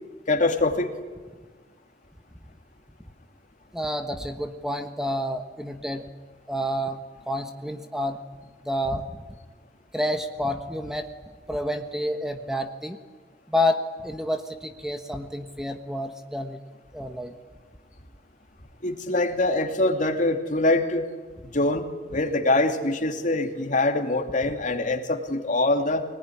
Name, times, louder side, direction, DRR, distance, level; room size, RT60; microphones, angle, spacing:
voice 1, 0.3-0.9 18.8-21.1 21.5-21.8 22.1-26.1, left 2 dB, 45° left, 4 dB, 2.7 m, -24 dB
voice 2, 3.7-6.1 6.5-7.0 7.2-8.2 8.6-9.0 9.9-11.1 11.5-13.0 13.5-16.6 16.9-17.3, left 1 dB, 5° right, 6 dB, 1.3 m, -29 dB
25.0 x 19.5 x 9.9 m, 1.4 s
head